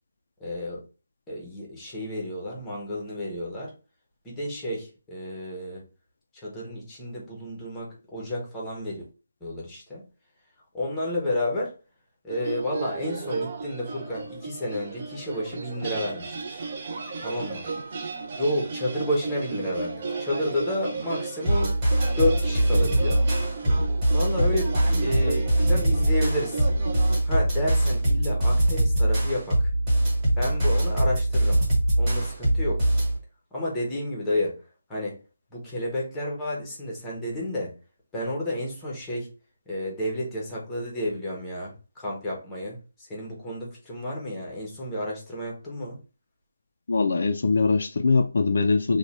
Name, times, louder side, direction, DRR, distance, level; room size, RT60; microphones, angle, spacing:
voice 1, 0.4-0.8 1.3-3.7 4.2-5.9 6.3-9.0 9.4-10.0 10.7-11.7 12.2-16.6 17.2-17.7 18.4-21.7 22.2-23.2 24.1-26.7 27.2-29.7 30.4-31.6 32.0-32.9 33.5-34.6 34.9-35.2 35.5-37.7 38.1-39.3 39.7-46.0, left 1 dB, 5° left, 0.7 m, -31 dB
sound 1, 12.3-27.2, right 4 dB, 30° right, 0.5 m, -34 dB
sound 2, 21.5-33.2, right 1 dB, 10° right, 1.2 m, -23 dB
voice 2, 46.9-49.0, left 4 dB, 50° left, 0.3 m, -22 dB
3.2 x 2.1 x 3.9 m
hypercardioid pair, 175°, 0 cm